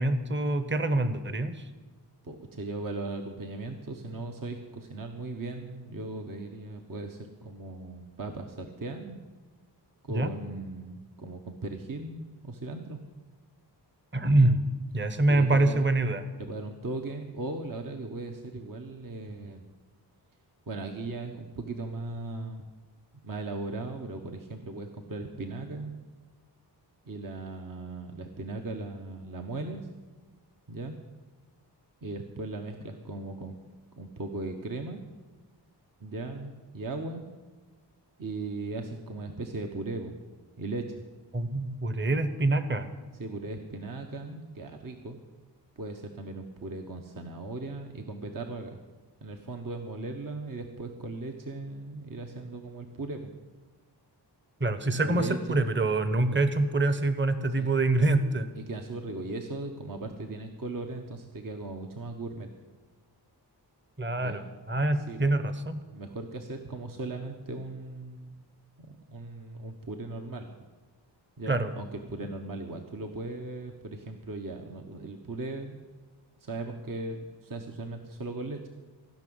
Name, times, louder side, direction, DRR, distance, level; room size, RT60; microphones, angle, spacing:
voice 1, 0.0-1.6 10.1-10.3 14.1-14.6 14.9-16.2 41.3-42.9 54.6-58.5 64.0-65.8 71.5-71.7, right 2 dB, 25° right, 10 dB, 1.1 m, -25 dB
voice 2, 2.2-9.2 10.0-13.0 15.3-15.8 16.4-19.6 20.7-22.7 23.2-25.9 27.1-29.9 30.7-31.0 32.0-33.6 34.0-35.0 36.0-37.2 38.2-40.1 40.6-41.0 43.2-45.2 45.8-48.8 49.2-53.3 55.0-55.6 56.3-56.4 57.6-57.8 58.6-62.5 64.2-64.5 64.9-65.3 65.9-68.4 68.8-70.5 71.4-75.8 76.4-78.7, right 3 dB, 50° right, 4 dB, 1.2 m, -38 dB
16.0 x 6.2 x 9.5 m, 1.3 s
wide cardioid pair, 85°, 42 cm